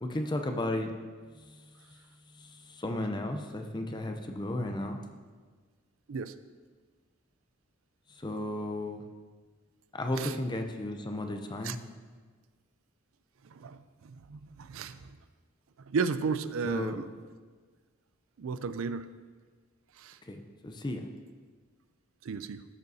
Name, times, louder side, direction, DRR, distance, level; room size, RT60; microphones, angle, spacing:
voice 1, 0.0-0.9 1.3-2.0 2.3-5.0 8.1-9.0 9.9-11.8 16.6-17.0 20.3-20.4 20.6-21.1, left 1 dB, 20° left, 5 dB, 0.5 m, -34 dB
voice 2, 13.4-15.2 15.8-17.1 18.4-19.1 20.0-20.2 22.2-22.7, right 5 dB, 80° right, 12 dB, 0.4 m, -34 dB
13.5 x 6.7 x 2.7 m, 1.5 s
head